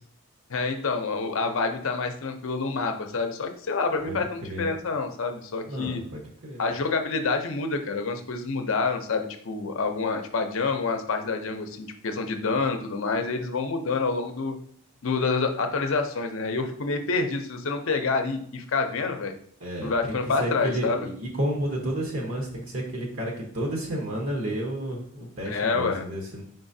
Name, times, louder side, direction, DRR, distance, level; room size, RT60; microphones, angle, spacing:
voice 1, 0.5-6.0 6.6-14.6 15.0-19.3 19.8-21.1 25.5-26.0, left 4 dB, 65° left, 6 dB, 0.6 m, -27 dB
voice 2, 4.0-4.7 5.7-6.6 19.6-26.4, right 1 dB, 65° right, -1 dB, 1.0 m, -31 dB
4.8 x 3.8 x 2.7 m, 0.62 s
head